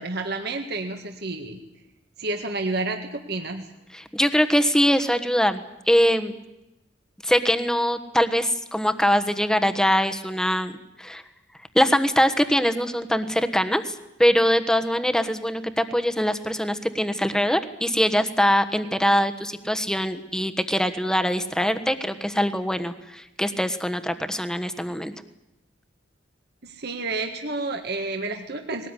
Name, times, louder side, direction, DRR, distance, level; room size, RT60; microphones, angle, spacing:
voice 1, 0.0-1.6 2.2-3.6 26.6-28.9, right 3 dB, 60° right, 4 dB, 1.8 m, -30 dB
voice 2, 3.9-6.3 7.2-11.2 11.7-25.1, equal, 5° left, 8 dB, 1.3 m, -23 dB
20.5 x 18.5 x 9.9 m, 0.94 s
head